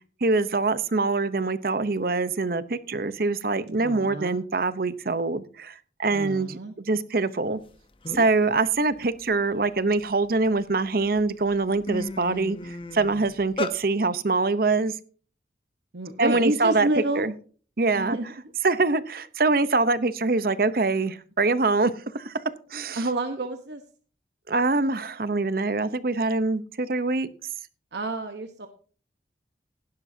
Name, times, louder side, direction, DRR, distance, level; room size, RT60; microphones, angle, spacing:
voice 1, 0.2-7.6 8.1-14.9 16.2-16.9 17.1-17.3 17.8-18.2 18.6-22.3 22.7-23.1 24.5-27.3, right 3 dB, 55° right, 14 dB, 0.8 m, -24 dB
voice 2, 3.8-4.4 6.1-6.7 15.9-17.3 17.9-18.2 22.9-23.8 27.9-28.7, right 2 dB, 70° right, 6 dB, 1.1 m, -29 dB
sound 1, 7.7-7.8 8.0-8.5 8.9-10.5 11.1-11.2 11.5-13.8, left 1 dB, 30° left, 0.9 m, -34 dB
16.5 x 11.5 x 2.8 m, 0.41 s
head